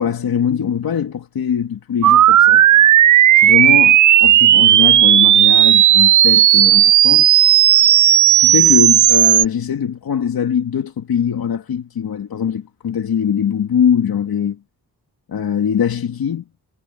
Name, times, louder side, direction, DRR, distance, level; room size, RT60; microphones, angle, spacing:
voice 1, 0.0-2.7 3.4-7.3 8.4-14.6 15.3-16.4, left 8 dB, 70° left, 2.1 m, -21 dB
sound 1, 2.0-9.4, right 12 dB, 55° right, 0.4 m, -11 dB
wide cardioid pair, 100°, 37 cm